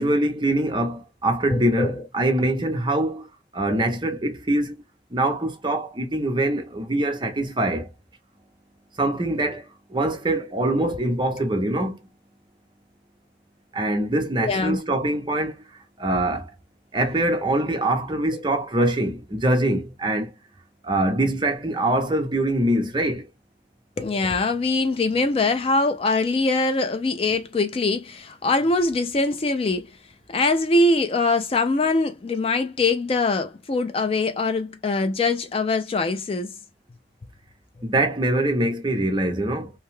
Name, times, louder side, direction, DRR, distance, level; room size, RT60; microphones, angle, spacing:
voice 1, 0.0-3.3 3.5-4.8 5.1-7.9 9.0-12.0 13.7-15.6 16.0-16.5 16.9-20.3 20.8-23.3 37.8-39.7, right 1 dB, 25° right, 0.6 m, -23 dB
voice 2, 1.5-2.0 14.4-14.8 18.3-18.4 24.0-29.9 30.3-36.5, left 3 dB, 30° left, 0.3 m, -23 dB
2.7 x 2.2 x 3.0 m
head